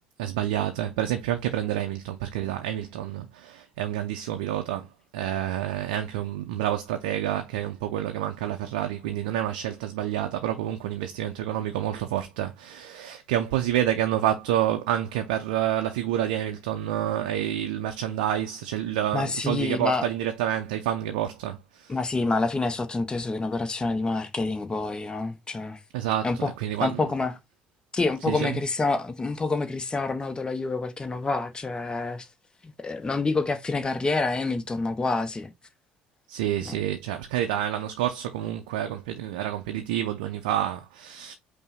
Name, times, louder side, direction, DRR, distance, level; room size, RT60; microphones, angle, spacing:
voice 1, 0.2-21.9 25.9-26.3 26.6-27.0 28.3-28.6 36.3-41.3, right 11 dB, 65° right, 0.4 m, -28 dB
voice 2, 19.1-20.1 21.9-25.8 26.2-26.5 26.8-27.3 27.9-32.3 32.6-35.5 36.6-36.8, left 3 dB, 20° left, 0.6 m, -27 dB
5.4 x 2.0 x 4.1 m
figure-of-eight pair, 55°, 5 cm